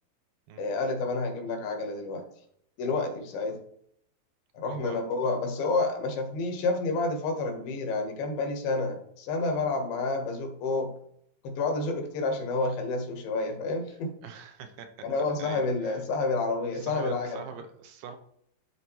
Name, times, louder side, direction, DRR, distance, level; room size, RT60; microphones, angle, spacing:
voice 1, 0.6-2.2 2.8-3.6 4.5-10.9 11.4-14.2 15.0-17.4, left 3 dB, 80° left, 3 dB, 3.1 m, -29 dB
voice 2, 4.6-5.0 14.2-14.9 15.4-16.0 16.7-18.2, right 6 dB, 80° right, 6 dB, 2.3 m, -43 dB
12.0 x 4.1 x 3.0 m, 0.69 s
omnidirectional pair, 4.2 m